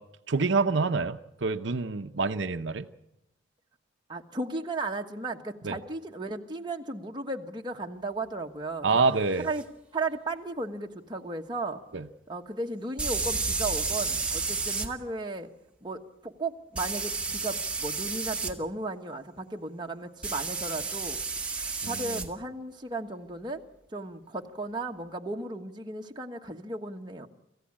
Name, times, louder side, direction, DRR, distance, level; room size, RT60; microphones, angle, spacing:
voice 1, 0.3-2.9 5.6-5.8 8.8-9.5 11.9-12.0 21.8-21.9, right 4 dB, 70° right, 8 dB, 0.8 m, -26 dB
voice 2, 4.1-9.0 9.4-9.6 9.9-11.8 12.3-15.5 15.8-21.2 21.5-23.6 23.9-27.3, right 2 dB, 25° right, 2 dB, 1.4 m, -35 dB
sound 1, 9.5-9.6 13.0-14.9 16.7-18.5 20.2-22.3, right 4 dB, 5° right, 1.6 m, -31 dB
27.0 x 15.5 x 8.7 m, 0.84 s
head